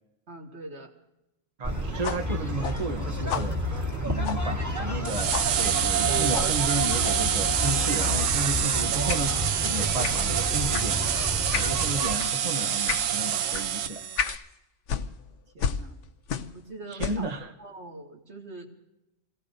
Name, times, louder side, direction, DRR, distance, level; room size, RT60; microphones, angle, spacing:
voice 1, 0.3-0.9 15.5-16.0 16.5-18.7, right 2 dB, 60° right, 0 dB, 2.4 m, -43 dB
sound 1, 1.6-12.2, equal, 15° right, 1.7 m, -31 dB
voice 2, 1.6-11.2 11.5-14.0 16.9-17.5, right 2 dB, 35° right, 4 dB, 0.9 m, -33 dB
sound 2, 2.0-5.0 5.3-5.5 6.3-6.5 7.0-7.2 8.0-8.3 9.1-9.3 10.0-10.2 10.7-10.9 11.5-11.8 12.2-12.4 12.9-13.1 13.5-13.7 14.2-14.4 14.9-16.6 16.9-17.3, left 7 dB, 70° left, 1.1 m, -33 dB
sound 3, 5.0-14.3, right 9 dB, 85° right, 1.1 m, -26 dB
28.0 x 18.0 x 2.7 m, 0.90 s
omnidirectional pair, 1.3 m